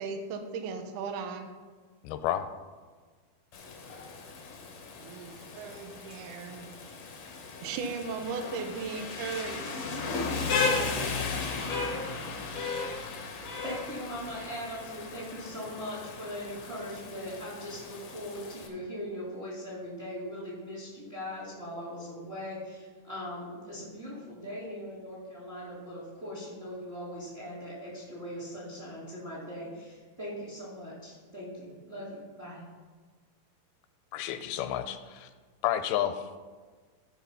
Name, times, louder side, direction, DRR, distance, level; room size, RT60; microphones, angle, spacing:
voice 1, 0.0-1.5 4.9-6.7 7.6-9.6, right 5 dB, 70° right, 6 dB, 2.2 m, -37 dB
voice 2, 2.0-2.5 34.1-35.3 35.6-36.2, left 11 dB, 90° left, 10 dB, 2.6 m, -30 dB
Rain, 3.5-18.7, left 4 dB, 60° left, 1.5 m, -35 dB
voice 3, 13.6-32.6, equal, 20° right, -5 dB, 2.4 m, -40 dB
14.0 x 5.4 x 5.6 m, 1.4 s
omnidirectional pair, 4.4 m